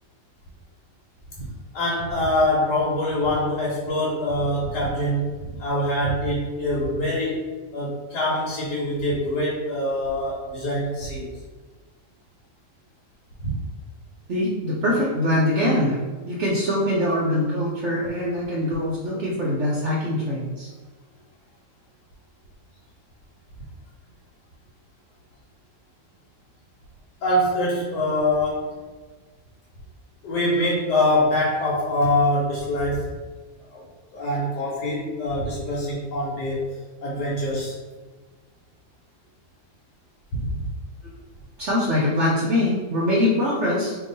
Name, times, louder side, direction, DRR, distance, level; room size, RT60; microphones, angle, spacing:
voice 1, 1.7-7.4 7.7-11.3 13.4-13.6 27.2-28.7 30.2-33.0 33.7-33.8 34.1-36.7 37.0-37.7 40.4-40.6, left 1 dB, 90° left, -5 dB, 1.3 m, -24 dB
voice 2, 14.3-16.0 16.2-20.7 41.0-41.1 41.6-44.0, left 1 dB, 60° right, -5 dB, 0.8 m, -23 dB
2.9 x 2.3 x 3.8 m, 1.3 s
omnidirectional pair, 1.7 m